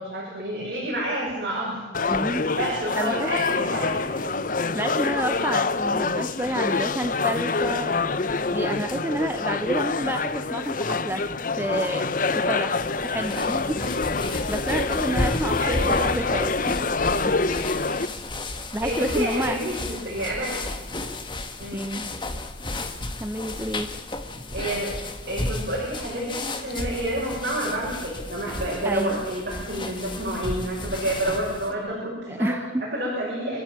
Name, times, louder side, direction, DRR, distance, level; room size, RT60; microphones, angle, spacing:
voice 1, 0.0-1.8 2.5-4.3 15.6-16.1 18.8-20.7 21.6-21.9 24.5-25.0 25.3-32.5 32.8-33.6, right 1 dB, 50° right, -4 dB, 6.7 m, -29 dB
sound 1, 1.9-18.1, left 4 dB, 45° left, 0.8 m, -26 dB
voice 2, 2.1-2.5 3.0-3.3 4.7-8.1 8.5-11.2 11.6-12.1 12.3-13.8 14.5-16.8 17.3-17.4 18.7-19.6 21.7-22.1 23.2-23.9 28.8-29.2 32.3-32.9, right 1 dB, 10° right, 7 dB, 0.8 m, -29 dB
sound 2, 12.8-31.7, left 2 dB, 25° left, 1.6 m, -33 dB
26.5 x 14.0 x 9.0 m, 1.2 s
head